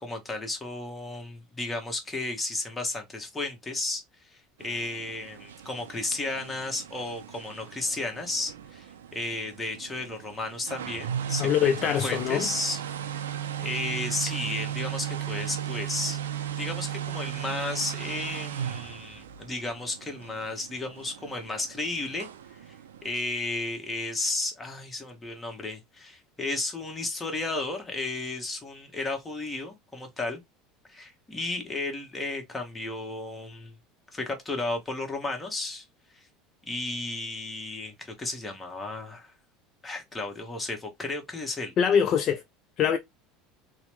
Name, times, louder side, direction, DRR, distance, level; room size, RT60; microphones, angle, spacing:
voice 1, 0.0-4.0 4.3-12.8 13.6-16.2 16.6-22.8 23.0-30.4 30.9-33.7 34.1-35.8 36.1-36.3 36.7-39.3 39.8-41.7, left 2 dB, 20° left, 1.1 m, -33 dB
sound 1, 4.6-23.1, right 9 dB, 90° right, 0.3 m, -36 dB
voice 2, 11.4-12.5 41.8-42.4 42.8-43.0, left 8 dB, 50° left, 0.4 m, -23 dB
3.0 x 2.1 x 2.9 m
hypercardioid pair, 85°, 0 cm